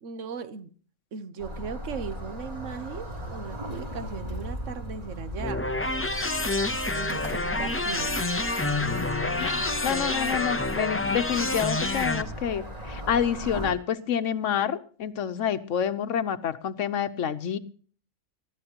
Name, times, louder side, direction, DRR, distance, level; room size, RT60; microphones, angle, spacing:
voice 1, 0.0-0.7 1.1-5.9 6.9-8.3, right 6 dB, 80° right, 1.3 m, -38 dB
sound 1, 1.4-13.7, equal, 30° right, 3.3 m, -38 dB
sound 2, 5.4-12.2, left 2 dB, 15° left, 0.5 m, -28 dB
sound 3, 7.3-12.4, right 1 dB, 55° right, 1.8 m, -41 dB
voice 2, 9.4-17.6, left 8 dB, 80° left, 1.2 m, -28 dB
19.5 x 13.0 x 2.9 m
omnidirectional pair, 1.3 m